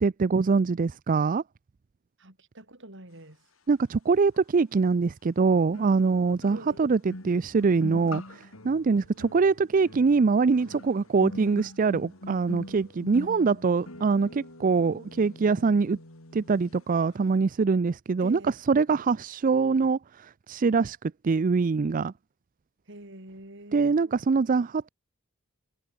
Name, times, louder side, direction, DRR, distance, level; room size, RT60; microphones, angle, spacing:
voice 1, 0.0-1.4 3.7-16.0 16.3-18.4 18.7-21.0 21.2-22.1 23.7-24.9, right 4 dB, 40° right, 0.4 m, -24 dB
voice 2, 2.2-3.4 6.5-6.9 18.2-18.6 22.9-24.2, right 1 dB, 60° right, 5.6 m, -46 dB
sound 1, 4.3-4.4 5.7-16.8 17.1-17.4, left 1 dB, 85° left, 5.8 m, -44 dB
head